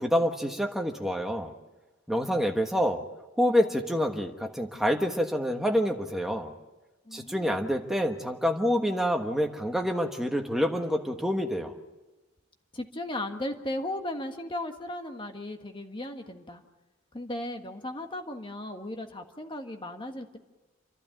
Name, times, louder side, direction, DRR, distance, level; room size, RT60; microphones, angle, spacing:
voice 1, 0.0-1.5 2.1-3.0 3.4-6.5 7.1-11.7, equal, ahead, 3 dB, 1.3 m, -27 dB
voice 2, 7.1-7.6 12.7-16.6 17.1-20.4, left 1 dB, 25° left, 5 dB, 1.5 m, -36 dB
28.5 x 12.0 x 9.2 m, 1.2 s
head